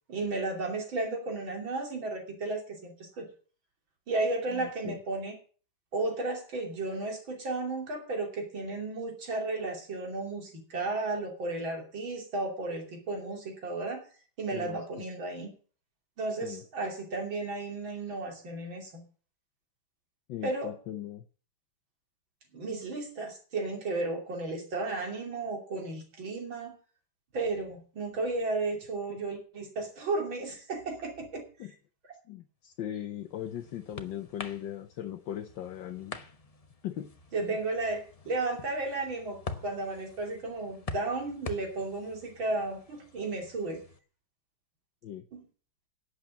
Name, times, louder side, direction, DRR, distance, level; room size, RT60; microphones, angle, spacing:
voice 1, 0.1-3.3 4.1-5.4 5.9-14.0 14.4-15.5 16.2-19.0 20.4-20.7 22.5-26.8 27.3-31.5 37.3-43.8 45.3-45.4, right 3 dB, 65° right, 3 dB, 3.6 m, -34 dB
voice 2, 4.5-5.0 14.5-14.8 16.4-16.6 20.3-21.2 31.6-31.7 32.3-36.2 36.8-37.1 37.4-37.6 45.0-45.2, left 11 dB, 65° left, 5 dB, 1.5 m, -39 dB
sound 1, 32.9-44.0, left 3 dB, 40° left, 0.5 m, -46 dB
11.5 x 8.2 x 7.3 m, 0.40 s
omnidirectional pair, 2.3 m